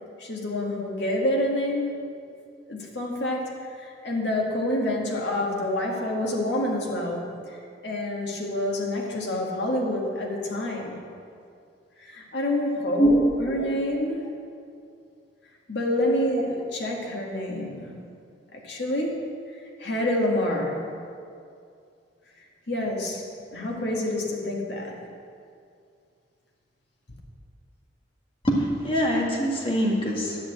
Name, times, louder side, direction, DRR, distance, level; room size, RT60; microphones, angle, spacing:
voice 1, 0.2-2.0 2.7-7.6 7.8-11.0 12.0-14.2 15.7-17.9 18.5-19.3 19.8-20.8 22.7-23.2 23.5-25.0, left 1 dB, 65° left, -1 dB, 1.9 m, -27 dB
voice 2, 28.4-30.4, equal, 30° left, -2 dB, 1.6 m, -23 dB
10.5 x 6.0 x 8.1 m, 2.4 s
head